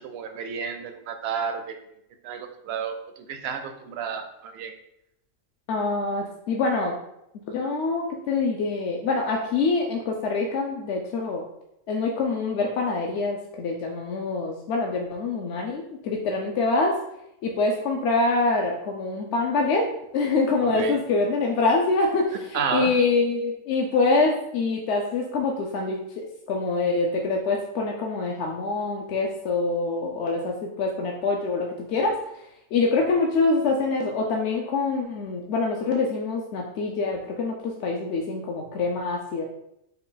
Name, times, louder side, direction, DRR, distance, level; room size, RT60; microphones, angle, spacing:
voice 1, 0.0-1.7 2.2-4.7 20.6-21.0 22.5-22.9, right 6 dB, 65° right, 7 dB, 0.7 m, -31 dB
voice 2, 5.7-7.0 7.5-11.4 11.9-16.9 17.4-19.8 20.1-32.1 32.7-39.4, left 3 dB, 65° left, 0 dB, 0.8 m, -25 dB
5.5 x 2.3 x 3.8 m, 0.81 s
omnidirectional pair, 1.4 m